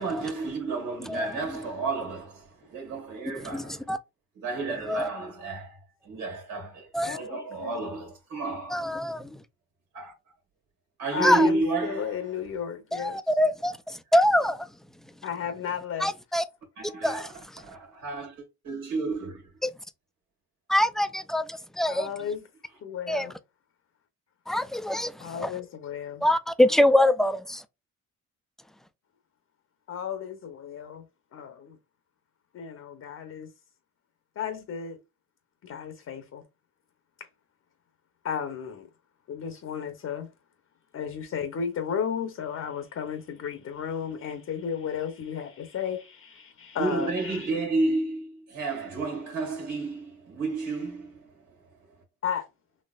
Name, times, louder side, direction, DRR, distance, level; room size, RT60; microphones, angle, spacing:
voice 1, 0.0-3.9 4.3-6.9 7.2-8.9 9.9-10.1 11.0-12.3 16.8-19.5 46.8-52.0, right 3 dB, 90° right, 1.7 m, -31 dB
voice 2, 3.5-4.0 4.9-5.1 6.9-7.2 8.7-9.4 11.2-11.5 12.9-14.7 16.0-16.4 17.0-17.3 19.6-19.7 20.7-22.1 23.1-23.3 24.5-25.5 26.2-27.6, left 1 dB, ahead, 0.3 m, -24 dB
voice 3, 7.0-7.8 11.1-13.2 15.2-16.1 21.9-22.4 22.8-23.3 25.2-26.2 29.9-31.0 31.3-31.8 32.5-33.5 34.4-35.0 35.6-36.4 37.2-37.3 38.2-38.9 39.3-40.3 40.9-47.5 52.2-52.5, left 7 dB, 55° left, 0.8 m, -34 dB
4.1 x 3.0 x 2.3 m
cardioid pair, 90°, 30 cm